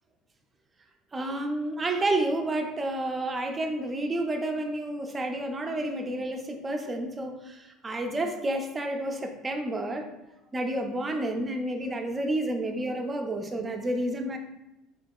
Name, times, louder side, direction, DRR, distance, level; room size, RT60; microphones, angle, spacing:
voice 1, 1.1-10.1 10.5-14.4, right 1 dB, 25° right, 5 dB, 0.4 m, -30 dB
3.7 x 2.7 x 2.2 m, 0.92 s
supercardioid pair, 95°, 0 cm